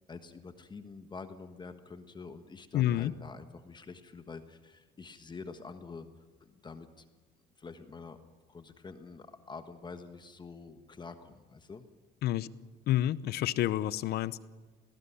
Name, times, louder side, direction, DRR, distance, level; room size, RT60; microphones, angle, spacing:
voice 1, 0.1-6.1 6.4-7.0 7.6-8.2 8.5-11.9, left 4 dB, 25° left, 9 dB, 1.4 m, -47 dB
voice 2, 2.7-3.1 12.2-12.5 12.9-14.4, left 13 dB, 70° left, 18 dB, 0.8 m, -29 dB
19.0 x 18.5 x 9.9 m, 1.3 s
cardioid pair, 110°, 17 cm